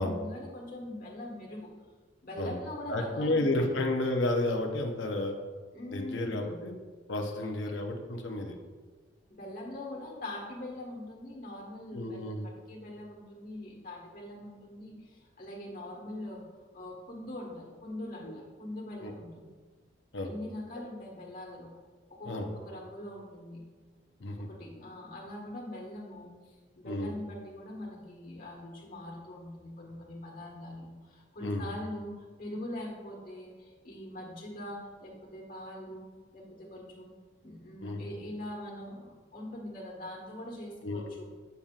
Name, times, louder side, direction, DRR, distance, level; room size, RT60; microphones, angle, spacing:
voice 1, 0.0-1.7 2.2-3.8 5.7-6.6 7.3-7.8 9.3-16.4 16.7-19.5 20.2-21.7 22.2-23.6 24.4-36.0 36.3-37.1 37.4-41.3, left 1 dB, 45° left, -2 dB, 1.5 m, -42 dB
voice 2, 2.9-5.3 5.9-6.7 7.1-8.6 11.9-12.4 18.2-18.4 19.0-19.1 20.1-20.3 22.2-22.5 24.2-24.5 26.8-27.1 31.4-31.7 37.8-38.1 40.8-41.2, left 2 dB, 75° left, 3 dB, 0.7 m, -31 dB
7.1 x 6.8 x 2.4 m, 1.4 s
head